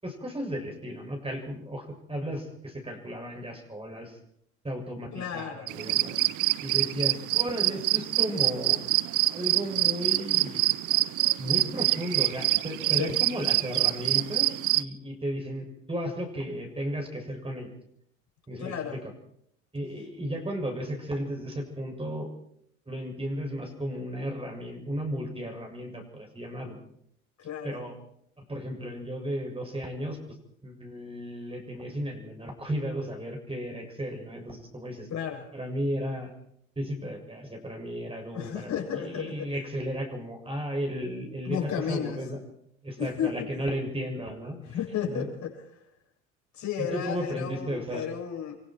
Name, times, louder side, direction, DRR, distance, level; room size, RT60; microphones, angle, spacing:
voice 1, 0.0-4.2 4.6-6.2 6.6-8.8 9.3-10.6 11.4-17.7 18.5-19.0 19.7-22.3 22.9-26.8 27.6-27.9 28.5-30.2 30.6-35.1 35.5-36.3 36.7-42.4 42.8-44.6 45.1-45.3 46.9-48.0, equal, 15° right, 2 dB, 7.0 m, -34 dB
voice 2, 5.1-5.7 12.9-13.2 18.6-19.0 27.4-27.8 35.1-35.5 38.3-39.5 41.4-42.2 43.0-43.6 44.6-45.5 46.5-48.6, left 8 dB, 45° left, 0 dB, 8.0 m, -33 dB
sound 1, 5.7-14.8, right 18 dB, 50° right, 0.9 m, -26 dB
30.0 x 24.0 x 4.7 m, 0.72 s
hypercardioid pair, 65°, 40 cm